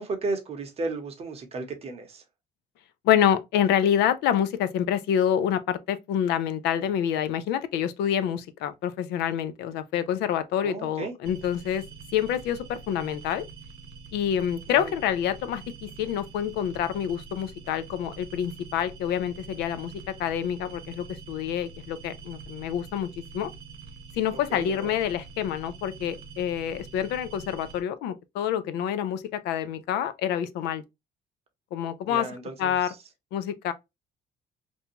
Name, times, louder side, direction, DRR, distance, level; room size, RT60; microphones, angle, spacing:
voice 1, 0.0-2.2 10.6-11.1 14.7-15.0 24.3-24.9 32.1-33.0, right 3 dB, 35° right, 0.8 m, -34 dB
voice 2, 3.0-11.8 12.1-13.4 14.1-19.9 20.2-23.1 23.3-23.5 24.2-30.8 31.7-32.3 32.6-32.9 33.3-33.7, left 9 dB, 80° left, 0.4 m, -27 dB
sound 1, 11.2-27.8, right 4 dB, 80° right, 0.7 m, -45 dB
2.6 x 2.2 x 2.7 m
cardioid pair, 110°, 17 cm